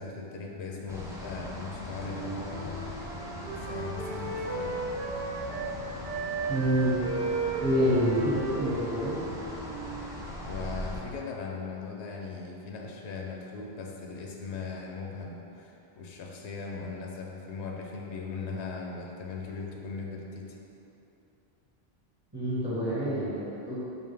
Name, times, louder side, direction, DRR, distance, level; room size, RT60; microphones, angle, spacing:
voice 1, 0.0-2.9 3.5-4.8 10.5-20.6, left 4 dB, 90° left, 0 dB, 0.9 m, -39 dB
sound 1, 0.9-11.0, equal, 5° right, 0.3 m, -40 dB
Wind instrument woodwind instrument, 2.0-5.7 6.0-10.1, right 4 dB, 70° right, 0.9 m, -35 dB
voice 2, 6.5-7.0 7.6-9.2 22.3-23.8, equal, 25° right, -10 dB, 1.3 m, -27 dB
5.2 x 2.5 x 3.3 m, 2.9 s
omnidirectional pair, 1.1 m